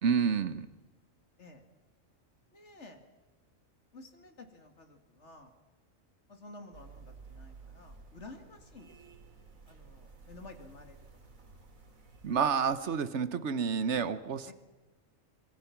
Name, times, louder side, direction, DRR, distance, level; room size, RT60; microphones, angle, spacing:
voice 1, 0.0-0.7 12.2-14.5, right 6 dB, 60° right, 14 dB, 1.2 m, -29 dB
voice 2, 2.5-3.0 3.9-5.5 6.3-9.0 9.7-11.1 14.4-14.5, left 2 dB, 55° left, 6 dB, 2.6 m, -52 dB
sound 1, 6.7-13.0, right 4 dB, 85° right, 2.8 m, -54 dB
26.0 x 22.0 x 6.0 m, 1.2 s
omnidirectional pair, 1.4 m